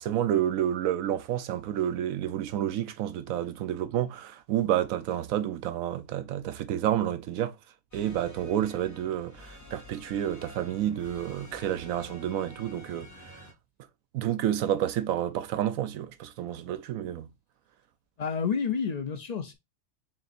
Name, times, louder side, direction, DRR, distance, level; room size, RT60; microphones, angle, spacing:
voice 1, 0.0-7.6 7.9-13.4 14.1-17.3, right 11 dB, 85° right, 1.1 m, -30 dB
sound 1, 7.9-13.5, equal, 15° left, 0.8 m, -49 dB
voice 2, 18.2-19.5, left 6 dB, 50° left, 0.5 m, -29 dB
4.2 x 3.9 x 2.5 m
omnidirectional pair, 1.4 m